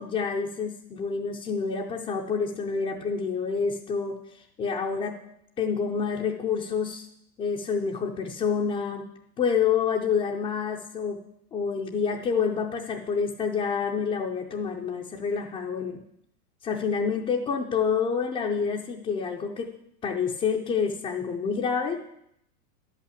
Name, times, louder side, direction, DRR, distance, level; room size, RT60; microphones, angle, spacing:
voice 1, 0.0-4.2 4.6-5.2 5.6-7.1 7.4-9.1 9.4-11.2 11.5-16.0 16.6-19.7 20.0-22.0, left 6 dB, 15° left, -1 dB, 0.4 m, -28 dB
10.5 x 5.6 x 8.2 m, 0.75 s
supercardioid pair, 140°, 48 cm